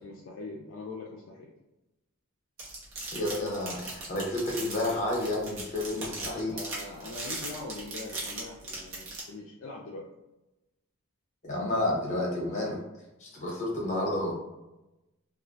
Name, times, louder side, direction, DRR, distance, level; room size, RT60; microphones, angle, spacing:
voice 1, 0.0-1.5 6.5-10.1, left 3 dB, 65° left, -2 dB, 0.3 m, -42 dB
sound 1, 2.6-9.2, right 3 dB, 65° right, 0.9 m, -38 dB
voice 2, 3.1-6.5 11.4-12.8 13.2-14.3, left 1 dB, 35° left, -3 dB, 0.8 m, -30 dB
2.3 x 2.1 x 2.5 m, 0.97 s
head